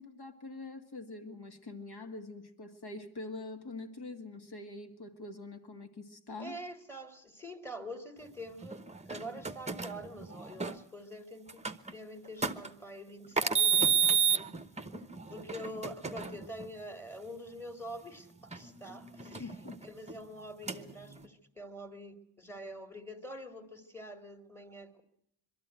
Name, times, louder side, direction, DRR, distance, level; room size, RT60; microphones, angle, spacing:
voice 1, 0.0-6.5 19.4-19.8, left 2 dB, 50° left, 6 dB, 2.1 m, -44 dB
voice 2, 6.4-11.6 11.9-14.6 15.3-19.5 19.8-25.0, equal, 5° left, 5 dB, 2.2 m, -45 dB
sound 1, 8.6-10.8 11.5-11.9 12.4-12.7 13.4-16.7 18.5-20.2 20.7-21.2, right 7 dB, 15° right, 1.0 m, -31 dB
22.0 x 13.0 x 9.1 m, 0.78 s
cardioid pair, 80°, 48 cm